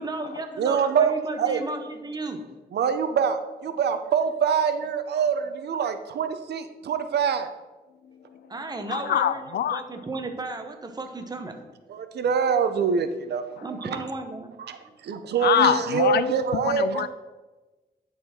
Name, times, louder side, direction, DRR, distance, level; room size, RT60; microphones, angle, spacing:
voice 1, 0.0-2.4 8.5-11.6 13.6-14.5 14.8-14.9, right 2 dB, 25° right, 6 dB, 0.9 m, -34 dB
voice 2, 0.6-1.1 1.4-1.6 2.7-7.5 11.9-13.4 14.6-17.1, right 6 dB, 75° right, 9 dB, 0.6 m, -25 dB
voice 3, 8.1-8.5 8.9-9.8 15.4-17.1, left 10 dB, 70° left, 14 dB, 0.4 m, -25 dB
10.0 x 4.2 x 4.3 m, 1.2 s
cardioid pair, 115°, 17 cm